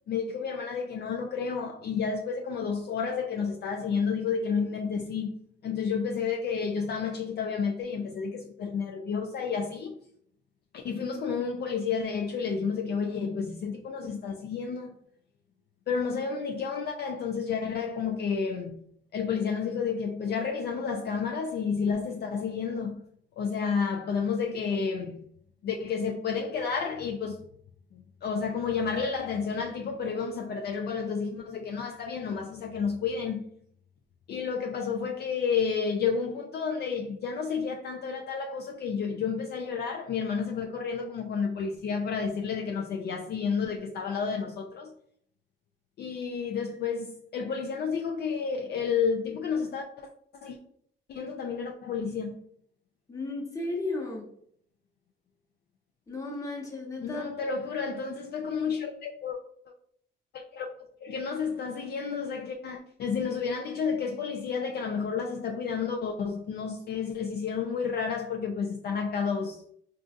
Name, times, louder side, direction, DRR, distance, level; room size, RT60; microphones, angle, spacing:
voice 1, 0.1-10.0 10.7-15.0 15.9-18.8 19.1-23.0 23.4-25.3 25.6-27.5 27.9-33.5 34.3-44.9 46.0-50.1 50.4-50.6 51.1-52.4 57.0-59.4 60.3-60.7 61.0-69.6, left 6 dB, 55° left, 0.4 m, -31 dB
voice 2, 53.1-54.3 56.1-57.3, left 2 dB, 15° left, 1.1 m, -34 dB
3.8 x 2.4 x 2.4 m
cardioid pair, 90°, 20 cm